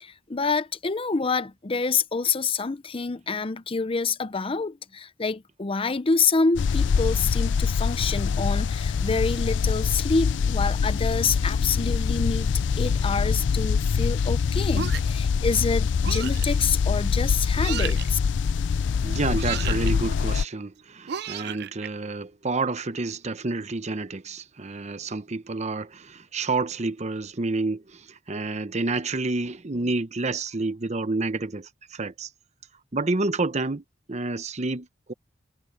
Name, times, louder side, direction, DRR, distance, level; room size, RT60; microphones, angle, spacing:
voice 1, 0.0-12.5 12.8-18.2, left 4 dB, 30° left, 0.6 m, -27 dB
sound 1, 6.6-20.4, left 6 dB, 75° left, 0.4 m, -24 dB
sound 2, 14.7-15.3 16.0-16.5 17.6-18.1 19.3-19.9 21.1-21.9, right 9 dB, 60° right, 0.5 m, -33 dB
voice 2, 19.0-32.3 32.9-33.8 34.1-35.1, right 3 dB, 40° right, 0.9 m, -29 dB
head